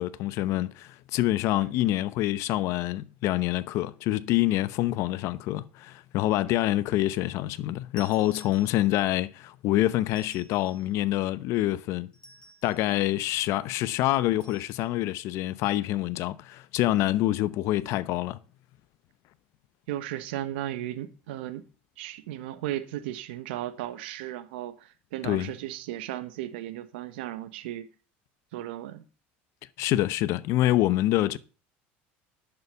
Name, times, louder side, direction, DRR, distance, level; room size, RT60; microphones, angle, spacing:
voice 1, 0.0-12.1 12.6-18.4 25.2-25.5 29.8-31.4, left 15 dB, 60° left, 0.8 m, -26 dB
sound 1, 8.0-9.1 10.1-10.9 12.1-12.9 14.4-14.8, right 1 dB, 15° left, 6.0 m, -53 dB
voice 2, 19.9-21.6 22.0-27.9 28.5-29.0, right 13 dB, 85° right, 1.3 m, -36 dB
10.5 x 7.0 x 6.7 m
supercardioid pair, 110°, 5 cm